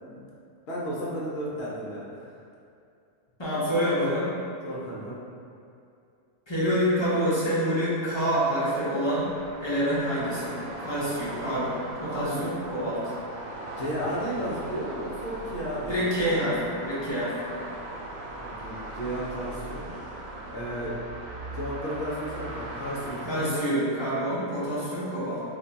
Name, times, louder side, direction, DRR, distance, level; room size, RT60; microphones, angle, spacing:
voice 1, 0.7-2.3 4.6-5.2 12.1-12.5 13.8-16.1 18.4-20.1 20.5-21.3 21.5-23.6, equal, 60° left, -6 dB, 0.8 m, -33 dB
voice 2, 3.4-4.4 6.5-9.3 9.6-13.2 15.9-17.3 23.2-25.4, equal, 30° left, -11 dB, 0.6 m, -27 dB
sound 1, 9.1-23.3, right 2 dB, 85° right, 1.0 m, -39 dB
2.5 x 2.2 x 3.9 m, 2.4 s
omnidirectional pair, 1.4 m